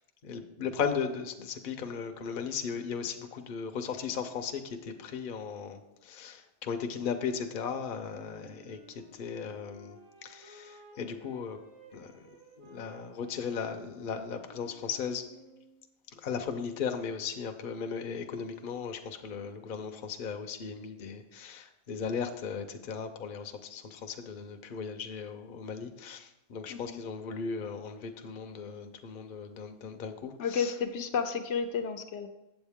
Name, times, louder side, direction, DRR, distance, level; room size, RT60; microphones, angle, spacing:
voice 1, 0.2-11.6 11.9-12.2 12.6-15.3 16.1-30.7, left 6 dB, 50° left, 6 dB, 0.8 m, -37 dB
Wind instrument woodwind instrument, 7.8-15.8, right 1 dB, 60° right, 2.9 m, -56 dB
voice 2, 30.4-32.3, left 6 dB, 75° left, 7 dB, 1.0 m, -32 dB
8.0 x 7.8 x 3.5 m, 0.97 s
omnidirectional pair, 1.3 m